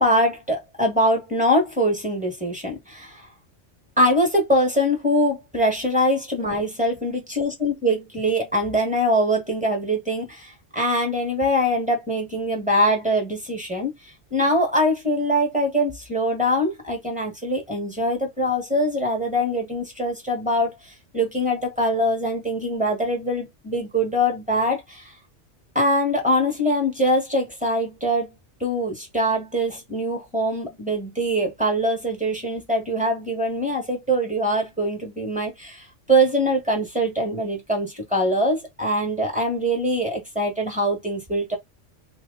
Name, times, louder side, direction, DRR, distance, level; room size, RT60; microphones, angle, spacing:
voice 1, 0.0-3.3 4.0-13.9 14.3-25.1 25.7-28.3 28.6-41.6, equal, 5° right, 1.5 m, -23 dB
2.9 x 2.8 x 3.8 m
omnidirectional pair, 1.3 m